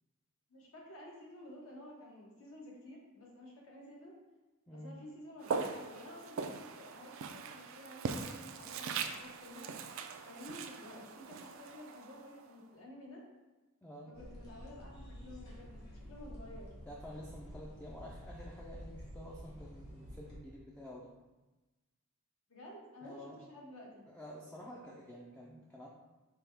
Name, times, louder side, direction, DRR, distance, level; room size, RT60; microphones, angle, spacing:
voice 1, 0.5-4.1 4.7-9.8 10.2-13.2 14.1-16.7 22.5-24.1, left 1 dB, 70° left, -3 dB, 1.2 m, -52 dB
Walk footsteps, 5.4-12.6, right 5 dB, 60° right, 0.3 m, -41 dB
voice 2, 13.8-14.1 16.9-21.1 23.0-23.4 24.1-25.9, equal, 5° left, -4 dB, 0.4 m, -49 dB
sound 1, 14.1-20.4, equal, 50° left, 1.3 m, -50 dB
5.1 x 2.3 x 4.5 m, 1.1 s
head